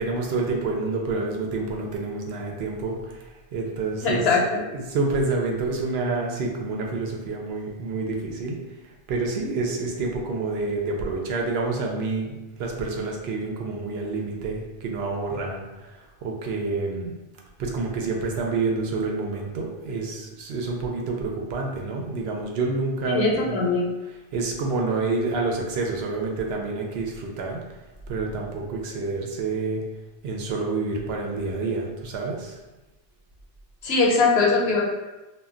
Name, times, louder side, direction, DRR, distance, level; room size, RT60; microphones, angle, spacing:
voice 1, 0.0-4.3 4.7-8.6 8.8-17.1 17.6-23.6 24.3-27.6 28.1-29.8 30.2-32.6, right 3 dB, 75° right, 0 dB, 0.8 m, -28 dB
voice 2, 4.0-4.6 23.0-23.9 33.8-34.8, left 3 dB, 75° left, -2 dB, 0.9 m, -21 dB
2.2 x 2.2 x 3.6 m, 1.1 s
omnidirectional pair, 1.1 m